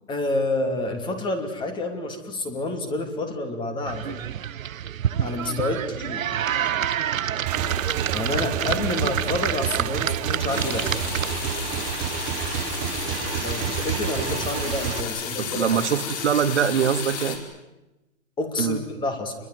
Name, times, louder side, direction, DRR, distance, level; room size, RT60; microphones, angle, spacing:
voice 1, 0.1-4.2 5.2-6.3 8.1-10.9 13.4-15.8 18.4-19.4, left 2 dB, 10° left, 7 dB, 2.7 m, -28 dB
sound 1, 3.9-11.6, right 9 dB, 85° right, 0.9 m, -28 dB
Motorcycle / Engine, 7.5-15.0, right 9 dB, 20° right, 1.3 m, -29 dB
sound 2, 10.5-17.4, left 7 dB, 35° left, 5.0 m, -32 dB
voice 2, 15.4-17.4 18.6-18.8, right 8 dB, 60° right, 8 dB, 2.1 m, -23 dB
29.0 x 22.0 x 9.4 m, 1.0 s
hypercardioid pair, 155°, 39 cm